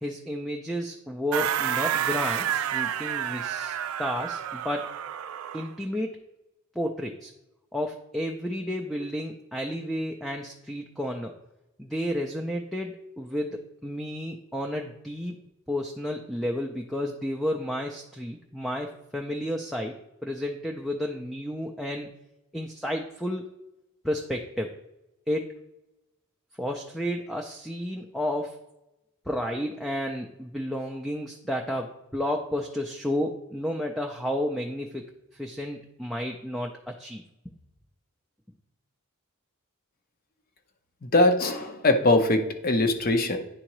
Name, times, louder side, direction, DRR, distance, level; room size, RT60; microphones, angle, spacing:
voice 1, 0.0-4.9 5.5-6.2 6.8-7.3 7.7-11.3 11.8-15.4 15.7-20.0 20.2-22.1 22.5-23.5 24.0-24.7 25.3-25.5 26.6-28.6 29.3-35.1 35.4-37.2, equal, ahead, 1 dB, 0.3 m, -31 dB
sound 1, 1.3-5.7, right 9 dB, 80° right, 0.4 m, -29 dB
voice 2, 41.1-43.4, left 2 dB, 45° left, 6 dB, 0.7 m, -21 dB
9.8 x 3.7 x 3.0 m, 0.91 s
head